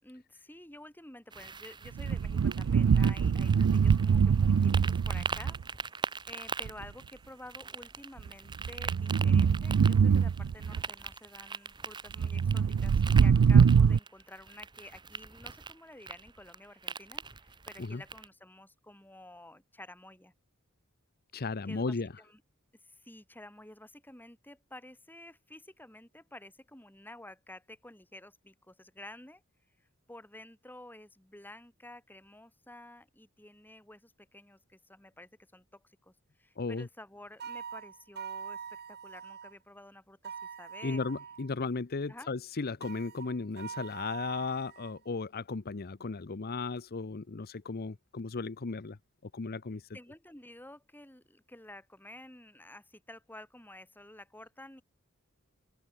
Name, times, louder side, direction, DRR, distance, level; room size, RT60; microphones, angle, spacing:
voice 1, 0.0-5.6 6.0-20.3 21.7-22.4 22.8-29.4 30.1-41.0 42.1-42.3 49.9-54.8, left 1 dB, 10° left, 6.1 m, -51 dB
sound 1, 1.3-18.3, right 5 dB, 20° right, 0.9 m, -42 dB
sound 2, 1.9-5.6 6.6-6.9 8.2-10.8 12.2-14.0, right 6 dB, 80° right, 0.4 m, -24 dB
voice 2, 21.3-22.1 36.6-36.9 40.8-49.0 49.3-49.8, left 4 dB, 45° left, 0.7 m, -35 dB
sound 3, 37.4-39.5 40.2-41.5 42.8-45.0, right 7 dB, 50° right, 1.2 m, -43 dB
open air
head